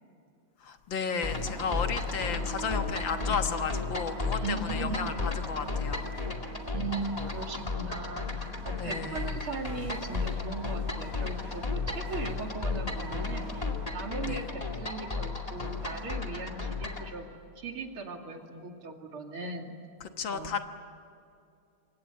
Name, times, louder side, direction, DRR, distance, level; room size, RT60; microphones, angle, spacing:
voice 1, 0.6-6.1 8.8-9.3 14.3-14.4 20.0-20.6, left 6 dB, 65° left, 7 dB, 2.0 m, -33 dB
sound 1, 1.2-17.1, left 4 dB, 15° left, 2.1 m, -34 dB
sound 2, 1.3-16.2, right 5 dB, 65° right, 3.6 m, -45 dB
voice 2, 4.4-5.2 6.7-17.2 17.6-19.7 20.3-20.5, right 3 dB, 80° right, 3 dB, 3.4 m, -38 dB
27.0 x 25.0 x 8.3 m, 2.5 s
omnidirectional pair, 2.3 m